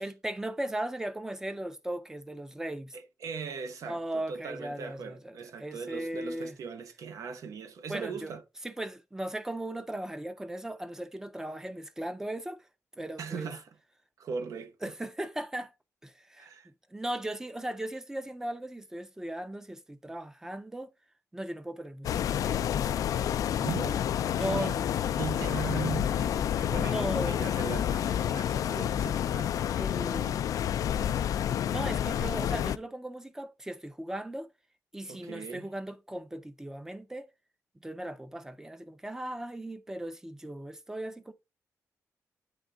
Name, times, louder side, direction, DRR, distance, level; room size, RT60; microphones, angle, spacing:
voice 1, 0.0-3.0 3.9-6.5 7.9-8.3 8.6-12.7 13.0-13.5 14.8-15.7 16.0-20.9 21.3-23.1 23.4-23.7 24.3-24.9 26.7-27.4 29.8-30.2 31.6-34.5 34.9-37.3 37.8-41.3, right 1 dB, 10° right, 0.6 m, -37 dB
voice 2, 2.9-8.4 13.2-13.7 14.2-14.9 16.4-16.7 23.6-24.0 24.5-24.8 25.1-29.6 30.2-30.4 35.1-35.7, right 6 dB, 70° right, 1.1 m, -39 dB
sound 1, 22.0-32.8, left 10 dB, 85° left, 0.3 m, -29 dB
8.3 x 3.5 x 3.8 m
wide cardioid pair, 170°, 6 cm